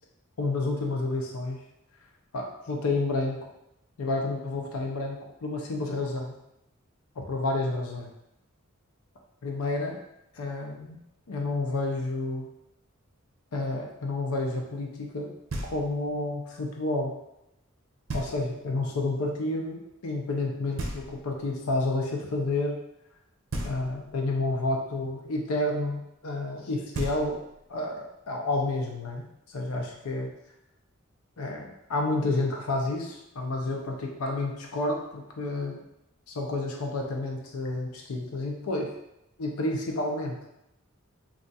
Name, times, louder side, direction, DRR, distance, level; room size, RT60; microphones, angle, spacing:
voice 1, 0.4-1.6 2.3-3.4 4.0-6.3 7.2-8.1 9.4-10.0 10.3-11.0 11.3-12.5 13.5-15.3 15.6-17.1 18.1-22.8 23.6-27.4 27.7-30.3 31.4-35.8 36.3-38.9 39.4-40.4, left 2 dB, 85° left, 1 dB, 0.5 m, -30 dB
Knock, 15.5-16.2 18.1-18.7 20.8-21.6 23.5-24.3 26.6-26.7 26.9-27.7, right 1 dB, 70° right, 0.5 m, -36 dB
2.4 x 2.4 x 3.9 m, 0.84 s
head